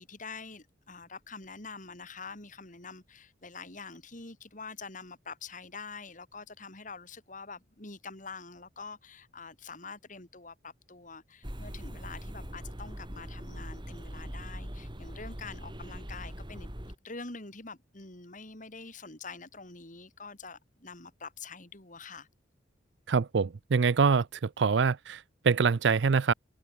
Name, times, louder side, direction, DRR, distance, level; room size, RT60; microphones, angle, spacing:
voice 1, 0.0-16.7 17.0-22.3, left 4 dB, 40° left, 3.6 m, -45 dB
sound 1, 11.4-16.9, equal, 25° right, 4.9 m, -41 dB
voice 2, 23.1-26.3, right 5 dB, 65° right, 0.5 m, -25 dB
head